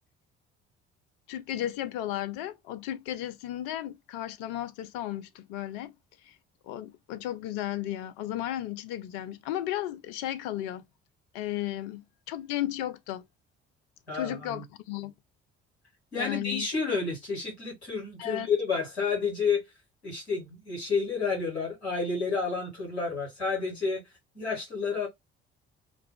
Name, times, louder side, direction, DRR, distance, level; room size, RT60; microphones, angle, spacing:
voice 1, 1.3-5.9 6.2-6.4 6.6-10.9 11.3-13.2 14.1-15.1 16.1-16.7 18.2-18.5, left 13 dB, 60° left, 0.5 m, -34 dB
voice 2, 14.1-14.6 16.1-19.6 20.0-24.0 24.3-25.1, left 5 dB, 85° left, 1.3 m, -30 dB
2.4 x 2.2 x 3.4 m
figure-of-eight pair, 45°, 32 cm